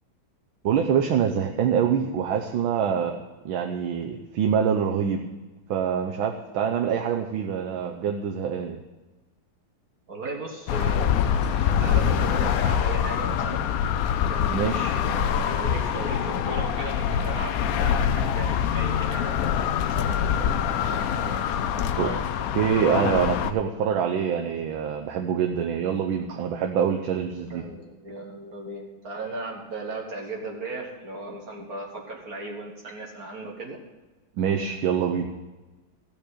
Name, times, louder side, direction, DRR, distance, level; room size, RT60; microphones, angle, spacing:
voice 1, 0.6-3.2 3.4-5.2 5.7-8.8 14.5-15.0 22.0-22.1 22.5-27.6 34.4-35.3, right 7 dB, 80° right, 3 dB, 1.6 m, -25 dB
voice 2, 10.1-13.7 14.3-22.2 27.5-33.8, right 2 dB, 50° right, 0 dB, 1.7 m, -37 dB
sound 1, 10.7-23.5, left 8 dB, 80° left, 0.8 m, -25 dB
15.5 x 5.2 x 8.2 m, 1.2 s
omnidirectional pair, 2.2 m